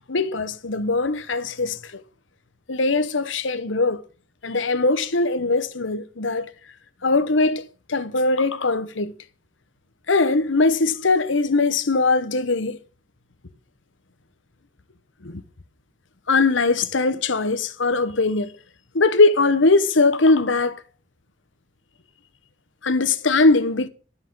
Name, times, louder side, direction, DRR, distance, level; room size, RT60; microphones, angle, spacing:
voice 1, 0.1-2.0 2.7-4.0 4.4-6.5 7.0-7.6 7.9-9.1 10.1-12.8 15.2-15.4 16.3-18.5 18.9-20.8 22.8-23.9, left 3 dB, 75° left, 1.1 m, -20 dB
12.5 x 5.6 x 7.7 m
head